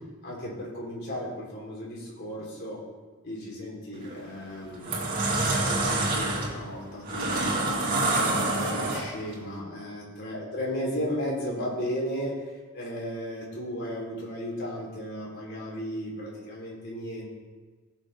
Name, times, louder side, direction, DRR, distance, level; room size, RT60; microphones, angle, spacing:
voice 1, 0.2-2.8 3.2-5.2 5.7-12.4 12.7-17.3, equal, 55° left, -4 dB, 3.6 m, -35 dB
sound 1, 3.9-4.2 4.7-9.3, right 2 dB, 45° right, 2.6 m, -27 dB
21.0 x 7.0 x 3.5 m, 1.4 s
head